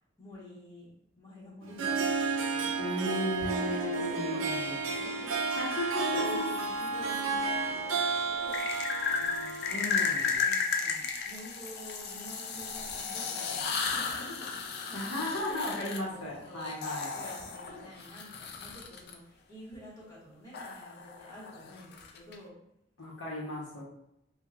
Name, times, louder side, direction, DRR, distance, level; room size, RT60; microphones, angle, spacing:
voice 1, 0.2-0.9 1.2-5.7 6.0-8.6 9.1-15.8 16.1-16.7 17.2-22.5, equal, 20° left, -6 dB, 1.3 m, -49 dB
Harp, 1.6-10.4, right 4 dB, 80° right, 0.5 m, -32 dB
voice 2, 2.8-4.9 5.6-6.4 9.7-10.4 14.9-17.2 23.0-23.8, left 1 dB, 75° left, -4 dB, 1.0 m, -35 dB
sound 1, 6.2-7.2 8.5-19.1 20.5-22.3, left 5 dB, 55° left, 0.4 m, -34 dB
4.7 x 2.3 x 2.4 m, 0.79 s
head